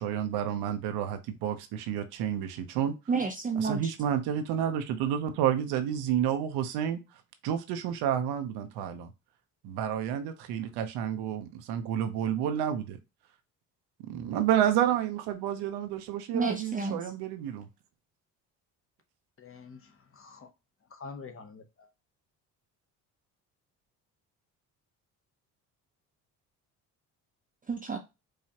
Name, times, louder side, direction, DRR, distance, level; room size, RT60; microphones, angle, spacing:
voice 1, 0.0-3.0 3.6-7.0 7.4-9.1 9.6-13.0 14.1-17.7, right 9 dB, 75° right, 0.8 m, -30 dB
voice 2, 3.1-3.9 16.3-17.1 27.7-28.0, right 4 dB, 20° right, 0.6 m, -30 dB
voice 3, 19.4-20.5 20.9-21.9, left 4 dB, 35° left, 0.8 m, -46 dB
4.8 x 2.4 x 2.8 m
supercardioid pair, 65°, 40 cm